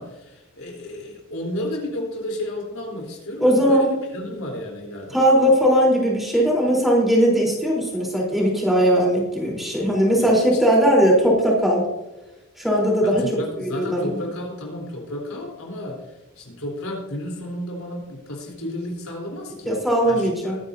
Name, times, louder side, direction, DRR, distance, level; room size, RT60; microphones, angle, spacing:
voice 1, 0.0-5.2 10.1-10.6 13.0-16.0 16.4-19.8 20.0-20.6, left 1 dB, 90° left, -1 dB, 3.8 m, -32 dB
voice 2, 3.4-3.9 5.1-11.8 12.6-13.3 13.6-14.1 19.7-20.6, equal, ahead, -3 dB, 3.8 m, -19 dB
21.0 x 9.5 x 2.8 m, 0.98 s
head